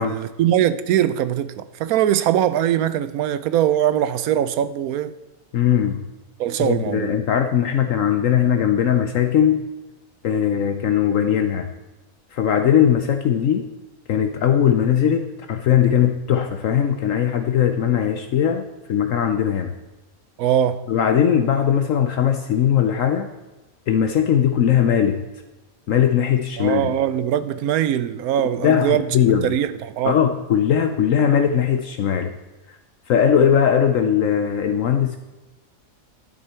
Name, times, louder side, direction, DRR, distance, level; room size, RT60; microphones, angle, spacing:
voice 1, 0.0-5.2 6.4-7.1 20.4-20.9 26.6-29.1 29.4-30.2, right 11 dB, 90° right, 1.1 m, -21 dB
voice 2, 5.5-6.0 6.6-9.6 10.2-11.7 12.3-13.7 14.1-19.7 20.9-23.3 23.9-25.2 25.9-26.9 28.6-29.5 30.0-32.3 33.1-35.2, left 9 dB, 70° left, 1.0 m, -19 dB
12.0 x 9.8 x 4.4 m
omnidirectional pair, 1.5 m